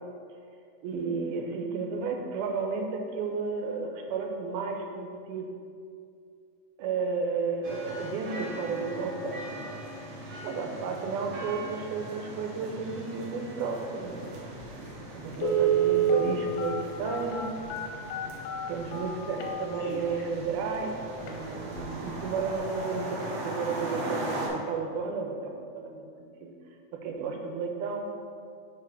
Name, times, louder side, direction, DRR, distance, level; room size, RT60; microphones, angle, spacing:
voice 1, 0.8-5.5 6.8-9.6 10.4-14.9 15.1-17.5 18.7-26.5 26.9-28.1, right 5 dB, 90° right, 2 dB, 2.2 m, -33 dB
sound 1, 7.6-24.5, right 1 dB, 70° right, 1.3 m, -40 dB
Telephone, 14.6-14.7 15.3-20.2 20.7-20.8 21.2-21.4 21.8-22.1 22.4-22.5, right 6 dB, 90° left, 2.2 m, -28 dB
5.1 x 4.8 x 4.7 m, 2.3 s
omnidirectional pair, 3.6 m